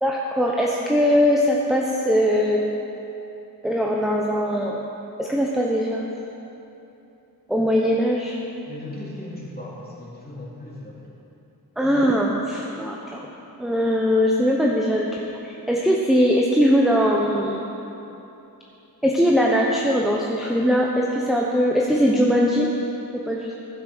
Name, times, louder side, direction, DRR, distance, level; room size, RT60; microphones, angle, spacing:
voice 1, 0.0-2.6 3.6-4.8 5.2-6.1 7.5-8.4 11.8-13.3 13.6-17.6 19.0-22.7 23.3-23.6, equal, ahead, -2 dB, 1.0 m, -21 dB
voice 2, 8.7-11.1, left 1 dB, 25° left, -6 dB, 3.1 m, -37 dB
15.0 x 6.1 x 6.3 m, 3.0 s
wide cardioid pair, 65°, 37 cm